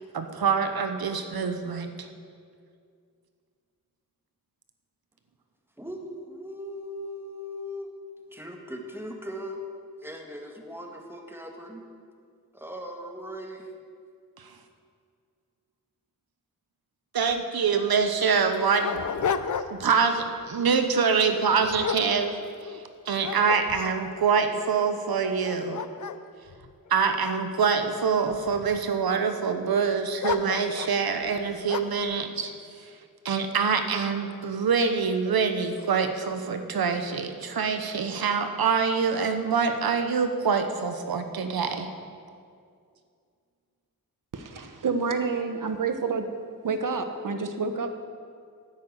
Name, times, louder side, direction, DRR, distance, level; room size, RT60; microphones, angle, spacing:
voice 1, 0.0-2.1 14.4-14.5 17.1-19.0 19.7-25.8 26.9-32.5 33.2-41.9, right 5 dB, 85° right, 7 dB, 1.1 m, -25 dB
voice 2, 5.8-8.0 8.3-9.6 10.0-11.8 12.5-13.7, equal, 5° right, 1 dB, 1.8 m, -39 dB
Dog, 17.3-17.4 17.6-17.7 18.3-20.0 20.4-20.7 21.3-22.8 23.2-24.1 24.7-24.8 25.3-27.6 28.3-28.9 30.2-31.0 31.7-32.1, left 7 dB, 55° left, 0.6 m, -33 dB
voice 3, 44.3-46.3 46.6-48.0, right 4 dB, 60° right, 7 dB, 1.2 m, -29 dB
9.7 x 9.5 x 7.9 m, 2.3 s
wide cardioid pair, 75°, 36 cm